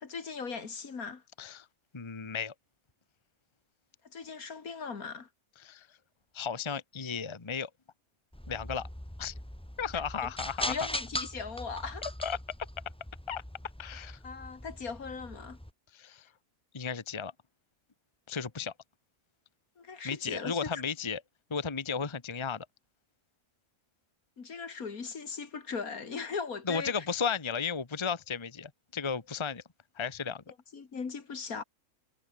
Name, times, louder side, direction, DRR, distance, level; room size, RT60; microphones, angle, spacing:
voice 1, 0.0-1.2 4.1-5.3 10.7-12.1 14.2-15.6 19.8-20.6 24.4-27.1 30.7-31.6, left 5 dB, 65° left, 2.5 m, -38 dB
voice 2, 1.9-2.5 5.6-5.9 6.3-7.7 8.5-8.9 9.2-9.3 9.8-10.8 12.2-12.4 13.3-13.4 13.8-14.2 15.9-16.3 16.7-17.3 18.3-18.7 20.0-21.2 21.5-22.7 26.6-29.6 29.9-30.4, left 6 dB, 20° left, 1.1 m, -34 dB
sound 1, 8.3-15.7, equal, 5° left, 1.5 m, -41 dB
omnidirectional pair, 1.6 m